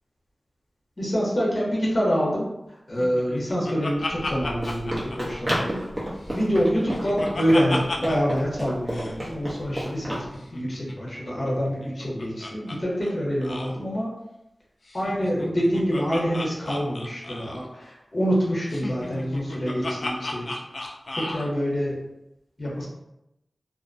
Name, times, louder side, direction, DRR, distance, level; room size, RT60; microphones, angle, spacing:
voice 1, 1.0-2.5 2.9-5.8 6.3-10.2 10.5-14.1 14.9-20.5 21.2-22.0 22.6-22.9, equal, 45° left, -5 dB, 0.8 m, -26 dB
Laughter, 3.0-5.9 6.2-8.3 8.6-8.7 8.9-9.1 10.4-12.8 13.0-13.1 13.4-13.7 14.9-17.7 18.7-21.5, left 2 dB, 70° left, 0.3 m, -34 dB
Run, 4.1-10.3, equal, 35° right, 0.8 m, -32 dB
2.4 x 2.1 x 2.5 m, 0.89 s
wide cardioid pair, 70°, 0 cm